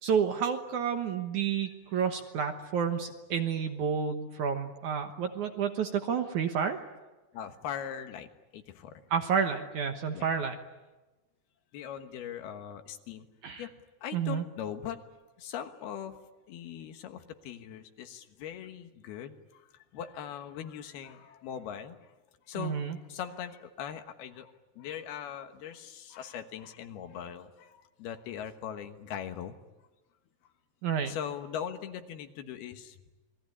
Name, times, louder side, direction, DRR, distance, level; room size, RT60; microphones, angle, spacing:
voice 1, 0.0-6.9 9.1-10.6 13.4-13.7 14.1-14.4 22.6-23.0 30.8-31.2, right 7 dB, 65° right, 6 dB, 2.2 m, -30 dB
voice 2, 7.3-9.0 10.1-10.3 11.7-13.3 13.6-13.7 14.0-15.0 15.4-16.2 16.5-19.6 19.9-22.1 22.5-29.5 31.1-33.0, left 9 dB, 75° left, 7 dB, 3.2 m, -40 dB
28.5 x 21.0 x 9.9 m, 1.1 s
omnidirectional pair, 4.7 m